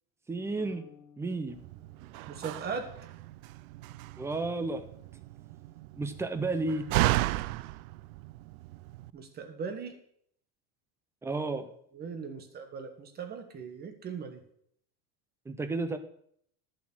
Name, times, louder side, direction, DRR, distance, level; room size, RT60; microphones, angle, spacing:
voice 1, 0.3-0.8 1.2-1.6 4.2-4.9 6.0-6.9 11.2-11.7 15.5-16.0, right 3 dB, 5° right, 10 dB, 0.5 m, -32 dB
sound 1, 0.6-2.9, left 7 dB, 50° left, 3.0 m, -57 dB
Slam, 1.5-9.1, right 17 dB, 90° right, 0.5 m, -34 dB
voice 2, 2.3-2.9 9.1-9.9 11.9-14.4, right 5 dB, 25° right, 7 dB, 1.4 m, -39 dB
11.0 x 7.4 x 6.1 m, 0.67 s
cardioid pair, 160°, 41 cm